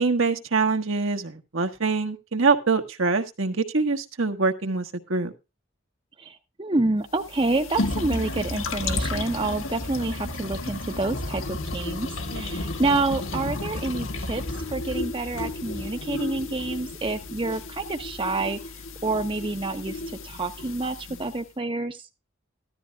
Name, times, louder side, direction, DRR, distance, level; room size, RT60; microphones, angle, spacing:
voice 1, 0.0-5.3 12.3-12.6, right 4 dB, 70° right, 1.4 m, -24 dB
voice 2, 6.2-12.1 12.3-14.4 14.7-18.6 19.0-22.0, right 2 dB, 25° right, 0.8 m, -28 dB
sound 1, 7.1-21.4, left 2 dB, 75° left, 1.8 m, -32 dB
14.5 x 12.5 x 2.4 m
head